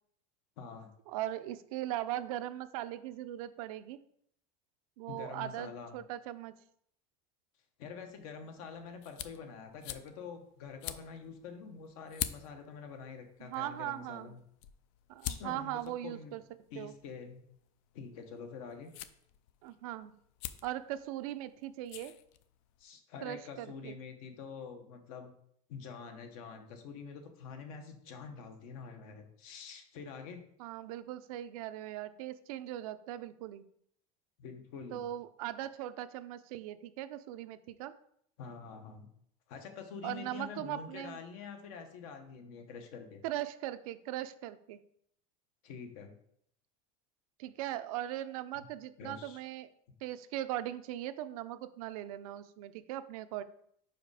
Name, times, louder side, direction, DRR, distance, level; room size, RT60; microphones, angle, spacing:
voice 1, 0.6-0.9 5.1-6.0 7.8-14.4 15.3-16.4 16.7-17.5 17.9-18.9 22.8-25.4 25.7-30.4 34.4-35.1 38.4-39.1 39.5-43.2 45.6-46.1 48.5-48.7 49.0-49.4, left 5 dB, 75° left, 5 dB, 1.2 m, -46 dB
voice 2, 1.1-4.0 5.0-6.6 13.4-14.4 15.1-16.4 16.8-16.9 19.6-20.2 20.6-22.1 23.2-23.9 30.6-33.6 34.9-37.9 40.0-41.2 43.2-44.8 47.4-49.7 50.0-53.4, right 13 dB, 85° right, 12 dB, 0.5 m, -39 dB
sound 1, 8.1-22.8, left 12 dB, 60° left, 0.5 m, -47 dB
5.1 x 5.0 x 4.8 m, 0.70 s
cardioid pair, 155°, 18 cm